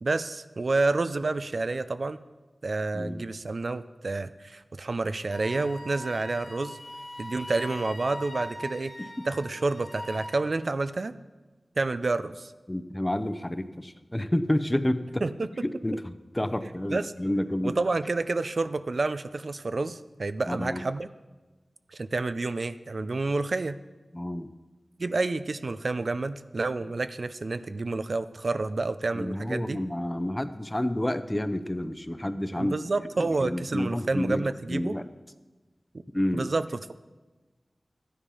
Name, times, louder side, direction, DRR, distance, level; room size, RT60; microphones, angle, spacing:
voice 1, 0.0-2.2 2.6-6.8 7.2-8.9 9.3-11.1 11.8-12.5 15.2-15.5 16.9-17.1 17.6-21.1 21.9-23.8 25.0-29.8 32.6-35.0 36.3-36.7, right 3 dB, 65° right, 12 dB, 0.5 m, -29 dB
voice 2, 2.9-3.3 12.7-15.2 15.6-17.8 20.5-20.8 24.1-24.5 29.1-32.7 33.2-34.4 34.7-35.1 36.1-36.5, left 1 dB, 20° left, 11 dB, 0.7 m, -29 dB
Wind instrument woodwind instrument, 5.3-10.4, equal, 70° left, 2.7 m, -40 dB
13.0 x 10.0 x 5.5 m, 1.2 s
wide cardioid pair, 70°, 0 cm